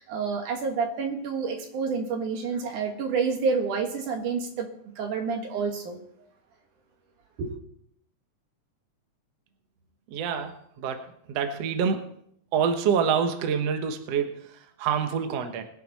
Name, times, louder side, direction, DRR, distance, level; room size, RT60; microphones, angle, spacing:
voice 1, 0.0-4.7 5.0-6.0 7.4-7.5, right 5 dB, 90° right, 3 dB, 3.2 m, -28 dB
voice 2, 10.1-12.0 12.5-15.6, right 7 dB, 60° right, 6 dB, 2.1 m, -27 dB
21.5 x 7.6 x 4.1 m, 0.71 s
omnidirectional pair, 3.4 m